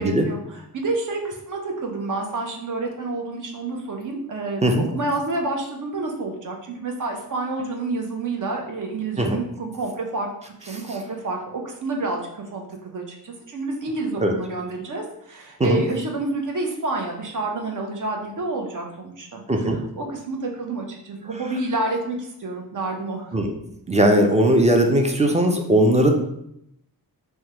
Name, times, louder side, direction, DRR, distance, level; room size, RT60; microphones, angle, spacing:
voice 1, 0.0-11.4 11.6-23.3, right 2 dB, 55° right, 1 dB, 0.7 m, -29 dB
voice 2, 23.9-26.1, right 1 dB, 20° right, 2 dB, 0.4 m, -18 dB
3.4 x 2.2 x 2.8 m, 0.75 s
wide cardioid pair, 75°, 37 cm